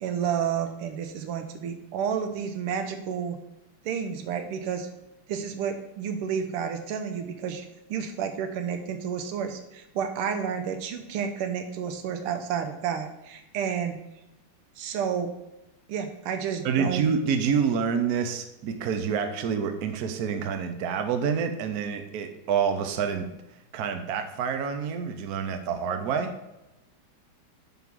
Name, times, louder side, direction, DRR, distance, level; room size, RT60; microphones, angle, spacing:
voice 1, 0.0-3.4 3.9-4.9 5.3-14.0 14.8-15.3 15.9-17.1, right 7 dB, 90° right, 6 dB, 1.7 m, -30 dB
voice 2, 16.6-23.3 23.7-26.3, right 6 dB, 65° right, 7 dB, 1.0 m, -27 dB
9.3 x 3.7 x 6.1 m, 0.94 s
omnidirectional pair, 2.3 m